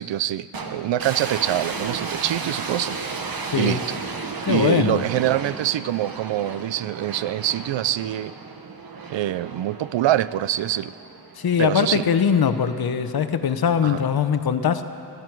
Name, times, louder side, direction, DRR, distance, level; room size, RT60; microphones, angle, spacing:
voice 1, 0.0-3.0 3.6-4.0 4.5-8.3 9.1-10.9 11.6-12.1 13.8-14.0, right 13 dB, 80° right, 17 dB, 0.5 m, -25 dB
sound 1, 0.5-11.8, right 4 dB, 50° right, 1.2 m, -34 dB
voice 2, 3.4-3.8 4.4-5.0 11.4-14.9, left 7 dB, 55° left, 10 dB, 0.8 m, -21 dB
21.0 x 15.0 x 4.6 m, 2.6 s
wide cardioid pair, 135°, 44 cm